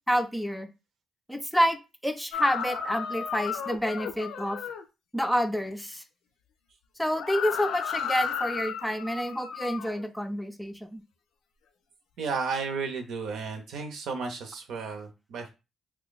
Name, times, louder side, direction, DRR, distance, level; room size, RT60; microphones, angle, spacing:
voice 1, 0.1-0.7 1.3-4.6 5.1-6.0 7.0-11.0, equal, 5° left, 7 dB, 0.4 m, -28 dB
sound 1, 2.3-4.8 7.1-10.0, left 7 dB, 85° left, 0.5 m, -33 dB
voice 2, 12.2-15.5, right 5 dB, 80° right, 5 dB, 0.8 m, -33 dB
2.8 x 2.3 x 3.9 m, 0.27 s
cardioid pair, 90°, 0 cm